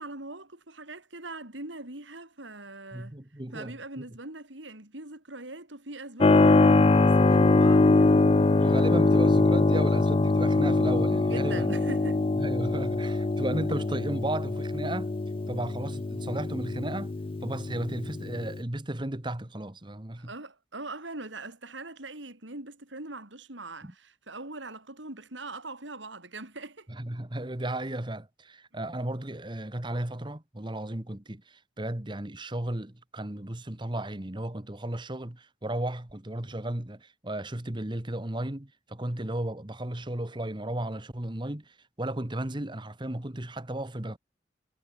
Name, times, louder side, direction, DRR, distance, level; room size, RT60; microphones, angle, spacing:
voice 1, 0.0-3.1 3.5-8.2 11.3-12.3 20.2-26.9, right 2 dB, 75° right, 4.8 m, -41 dB
voice 2, 2.9-4.0 8.3-11.7 12.4-15.1 15.5-17.1 17.4-20.3 23.8-23.9 26.9-44.2, right 1 dB, 25° right, 1.4 m, -34 dB
Keyboard (musical), 6.2-18.6, left 3 dB, 30° left, 0.4 m, -23 dB
head